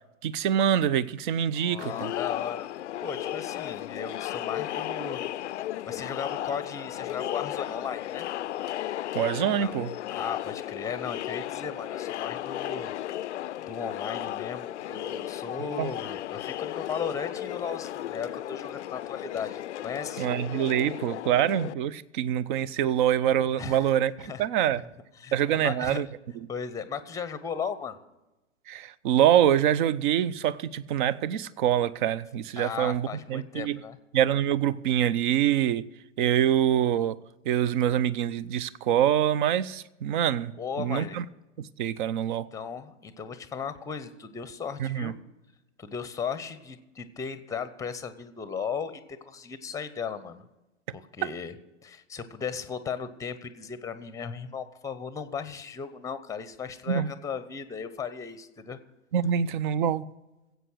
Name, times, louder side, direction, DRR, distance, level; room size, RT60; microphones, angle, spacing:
voice 1, 0.2-2.1 9.1-9.9 15.8-15.9 20.2-24.8 25.3-26.1 28.7-33.8 34.1-35.9 36.2-37.2 37.4-40.5 40.8-41.2 41.6-42.5 44.8-45.1 50.9-51.3 56.9-57.1 59.1-60.1, right 10 dB, 40° right, 0.6 m, -25 dB
voice 2, 1.6-5.6 5.8-8.3 9.5-9.7 10.1-13.3 13.7-20.3 23.6-23.8 24.2-24.4 25.2-26.0 26.5-28.0 32.6-34.0 40.6-41.2 42.3-45.2 45.8-50.4 50.9-51.5 51.8-58.8, left 6 dB, 10° left, 0.8 m, -36 dB
Crowd, 1.8-21.7, left 13 dB, 65° left, 0.5 m, -35 dB
16.5 x 8.1 x 6.2 m
figure-of-eight pair, 110°, 38 cm